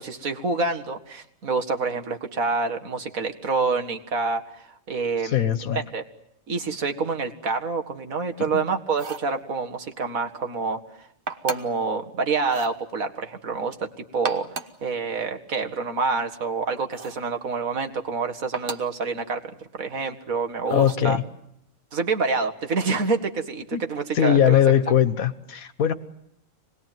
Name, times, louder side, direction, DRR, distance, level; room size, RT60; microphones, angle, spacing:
voice 1, 0.0-6.0 6.5-11.1 11.4-14.5 14.8-19.4 19.7-21.2 21.9-24.6, right 4 dB, 80° right, 5 dB, 2.2 m, -27 dB
voice 2, 5.2-5.8 8.5-8.7 20.7-21.2 23.7-23.8 24.1-25.9, left 9 dB, 90° left, 13 dB, 1.6 m, -20 dB
sound 1, 8.9-9.3 11.3-11.8 12.4-12.8 14.1-14.8 16.9-17.3 18.5-19.0 20.7-21.1, right 4 dB, 40° right, 1.3 m, -35 dB
26.0 x 20.0 x 9.2 m, 0.77 s
omnidirectional pair, 1.4 m